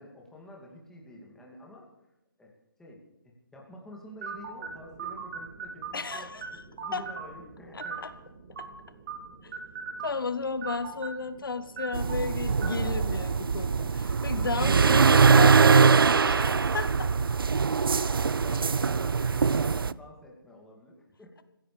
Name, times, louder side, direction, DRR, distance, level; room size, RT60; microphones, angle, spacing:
voice 1, 0.0-1.9 2.4-2.5 2.8-8.1 17.3-18.0 18.3-21.4, left 1 dB, 5° left, -2 dB, 2.4 m, -49 dB
sound 1, 4.2-13.7, right 5 dB, 40° right, 2.5 m, -41 dB
voice 2, 5.9-6.5 6.9-7.0 7.7-8.1 9.4-9.6 10.0-17.1, left 4 dB, 75° left, 12 dB, 1.0 m, -33 dB
sound 2, 11.9-19.9, right 5 dB, 80° right, 0.4 m, -22 dB
25.0 x 15.5 x 3.4 m, 0.93 s
figure-of-eight pair, 145°, 12 cm